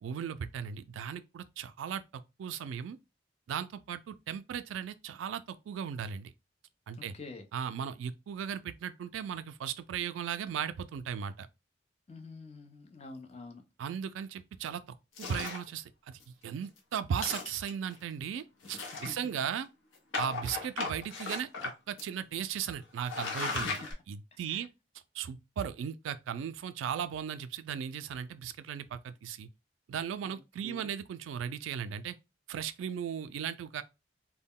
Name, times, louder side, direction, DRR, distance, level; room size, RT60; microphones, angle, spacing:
voice 1, 0.0-3.0 3.5-6.3 6.9-7.1 7.5-11.5 13.8-14.8 15.2-19.7 20.2-21.5 21.9-23.7 24.1-24.7 25.1-29.5 29.9-32.2 32.5-33.8, right 8 dB, 85° right, 0.3 m, -37 dB
voice 2, 6.9-7.5 12.1-13.6 18.9-19.2 23.5-23.9 24.3-24.7 30.2-30.9, left 3 dB, 35° left, 0.4 m, -47 dB
sound 1, 15.2-15.7 16.2-16.3 16.6-16.8 17.1-17.9 18.6-19.4 20.1-21.7 22.0-22.1 22.6-22.7 23.0-23.9, left 4 dB, 85° left, 0.8 m, -36 dB
2.2 x 2.1 x 3.5 m
head